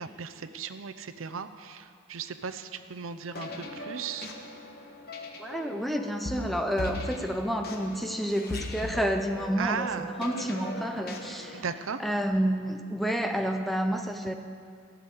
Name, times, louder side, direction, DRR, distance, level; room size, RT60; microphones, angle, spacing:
voice 1, 0.0-4.3 9.6-10.1 11.5-12.0, right 6 dB, 75° right, 10 dB, 0.7 m, -36 dB
sound 1, 3.3-11.6, left 1 dB, 50° left, 1.3 m, -39 dB
voice 2, 5.4-11.6 12.0-14.3, equal, ahead, 5 dB, 0.6 m, -29 dB
16.0 x 7.1 x 8.3 m, 2.3 s
head